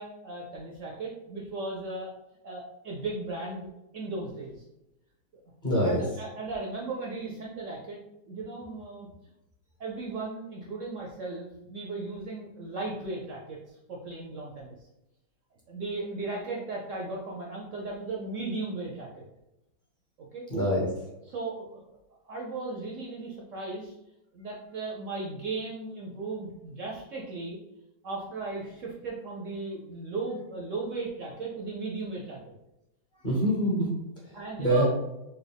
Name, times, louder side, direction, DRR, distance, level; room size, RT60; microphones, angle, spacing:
voice 1, 0.0-2.1 2.4-3.7 3.9-4.6 5.8-9.1 9.8-14.9 15.7-19.3 20.3-20.4 21.3-21.8 22.3-23.9 24.3-27.6 28.0-32.5 34.3-34.9, right 3 dB, 70° right, -2 dB, 0.7 m, -36 dB
voice 2, 5.6-6.0 20.5-20.9 33.2-34.9, equal, 40° left, -5 dB, 0.8 m, -26 dB
4.3 x 2.2 x 3.4 m, 0.91 s
omnidirectional pair, 1.9 m